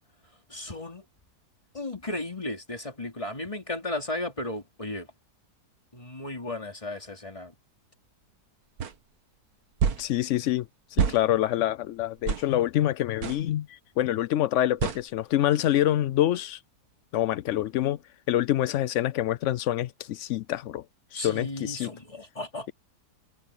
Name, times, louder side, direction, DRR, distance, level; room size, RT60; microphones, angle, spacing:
voice 1, 0.5-1.0 1.7-5.1 5.9-7.5 21.1-22.7, left 2 dB, 20° left, 3.1 m, -35 dB
sound 1, 8.8-8.9 9.8-10.1 11.0-11.2 12.3-12.5 13.2-13.4 14.8-15.0, right 7 dB, 65° right, 1.7 m, -26 dB
voice 2, 10.0-10.7 10.9-16.6 17.1-18.0 18.3-20.8 21.1-21.9, left 13 dB, 75° left, 0.6 m, -26 dB
omnidirectional pair, 1.8 m